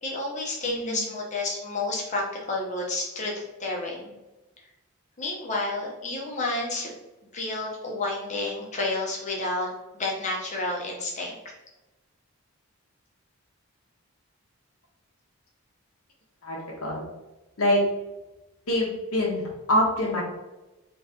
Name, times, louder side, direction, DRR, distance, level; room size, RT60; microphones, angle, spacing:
voice 1, 0.0-4.2 5.2-6.9 7.3-9.7 10.0-11.5, left 2 dB, 30° left, -2 dB, 0.8 m, -30 dB
voice 2, 0.6-1.0 16.4-16.6 16.8-17.0 17.6-17.8 18.7-19.4 19.7-20.2, left 1 dB, 75° left, -3 dB, 1.0 m, -24 dB
3.1 x 2.9 x 3.4 m, 1.0 s
head